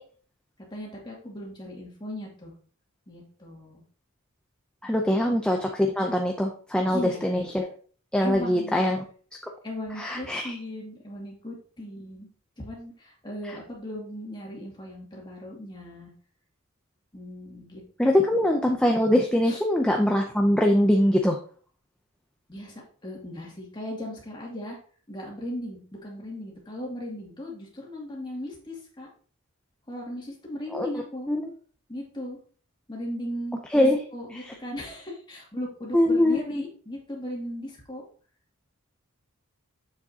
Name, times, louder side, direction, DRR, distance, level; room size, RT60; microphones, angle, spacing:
voice 1, 0.7-2.5 3.1-3.8 4.8-5.2 6.8-7.3 8.2-8.9 9.6-12.3 12.6-16.1 17.1-17.8 18.1-18.5 19.4-19.6 22.5-24.8 25.1-29.1 29.9-31.3 31.9-32.4 32.9-38.0, left 1 dB, 20° left, -2 dB, 2.3 m, -37 dB
voice 2, 4.8-7.7 8.1-9.0 10.0-10.5 18.0-21.4 30.7-30.9 31.3-31.4 33.7-34.0 34.4-34.5 35.9-36.4, left 1 dB, 5° left, 1 dB, 0.5 m, -22 dB
7.2 x 6.5 x 2.8 m, 0.43 s
head